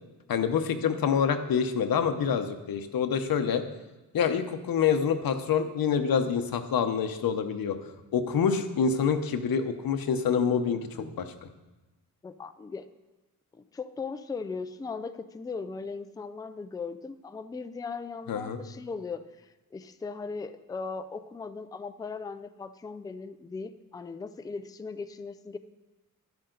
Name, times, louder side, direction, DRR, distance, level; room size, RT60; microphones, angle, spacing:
voice 1, 0.3-3.6 4.1-7.8 8.1-11.5 18.3-18.6, left 7 dB, 85° left, 8 dB, 0.9 m, -26 dB
voice 2, 10.9-11.2 12.2-12.9 13.5-25.6, left 4 dB, 10° left, 10 dB, 0.3 m, -38 dB
11.5 x 10.5 x 3.9 m, 1.1 s
wide cardioid pair, 165°, 34 cm